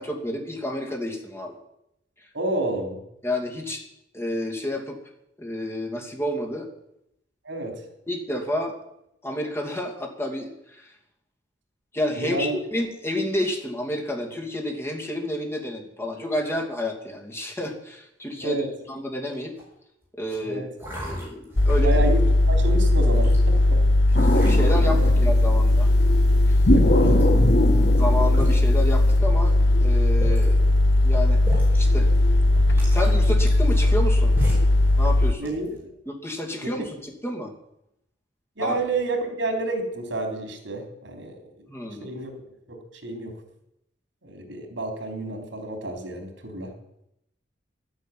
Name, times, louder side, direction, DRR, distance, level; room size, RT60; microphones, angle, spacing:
voice 1, 0.0-1.5 3.2-3.8 4.1-5.0 5.4-6.7 8.1-8.7 9.2-10.9 11.9-19.5 20.2-20.6 21.0-22.0 24.3-25.9 26.5-26.6 27.9-29.5 29.8-30.7 31.0-31.4 31.7-32.1 32.7-34.4 35.0-35.5 36.1-37.5 38.6-38.8 41.7-42.1, left 1 dB, 15° left, 1 dB, 2.7 m, -30 dB
voice 2, 2.3-3.0 7.4-7.8 12.2-12.6 18.4-18.7 20.4-20.7 21.8-23.8 26.6-27.5 35.4-35.9 36.8-36.9 38.6-41.7 42.0-42.3 42.7-43.3 44.2-46.7, right 2 dB, 85° right, 5 dB, 3.6 m, -30 dB
sound 1, 19.3-19.7 20.2-20.4 20.8-22.1 22.6-23.4 24.1-25.3 25.7-26.2 26.7-26.8 27.0-27.3 27.9-28.0 28.3-28.6 29.4-29.5 30.0-30.6 31.4-31.8 32.1-32.2 32.5-34.0 34.4-34.8 35.2-35.8, equal, 10° right, 6.3 m, -34 dB
sound 2, 21.6-35.3, left 1 dB, 90° left, 1.2 m, -18 dB
sound 3, 24.1-25.6 26.6-29.1, equal, 60° left, 2.1 m, -23 dB
11.5 x 10.0 x 9.3 m, 0.81 s
head